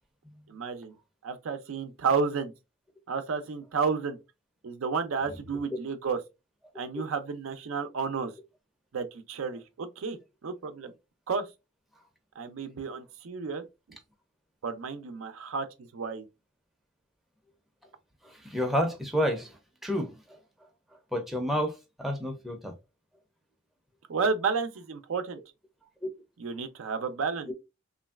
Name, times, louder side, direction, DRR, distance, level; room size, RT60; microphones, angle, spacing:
voice 1, 0.5-0.9 1.2-2.5 3.1-4.2 4.6-6.2 6.8-8.3 8.9-10.9 11.3-11.4 12.4-13.6 14.6-15.7 15.9-16.3 24.1-25.4 26.4-27.5, right 5 dB, 85° right, 0.5 m, -31 dB
voice 2, 18.2-20.4 21.1-22.7 26.0-26.1, equal, ahead, 0.5 m, -30 dB
3.0 x 2.5 x 2.3 m
head